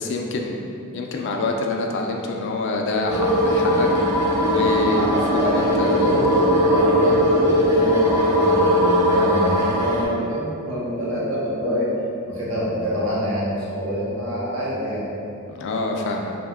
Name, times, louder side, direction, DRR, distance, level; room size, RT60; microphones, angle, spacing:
voice 1, 0.0-3.9 4.4-6.2 15.5-16.4, left 3 dB, 55° left, 2 dB, 0.3 m, -26 dB
sound 1, 3.1-10.1, equal, 10° right, 0.6 m, -19 dB
voice 2, 5.0-11.9 12.3-15.0, equal, 70° right, -7 dB, 0.8 m, -26 dB
2.6 x 2.1 x 3.5 m, 2.6 s
head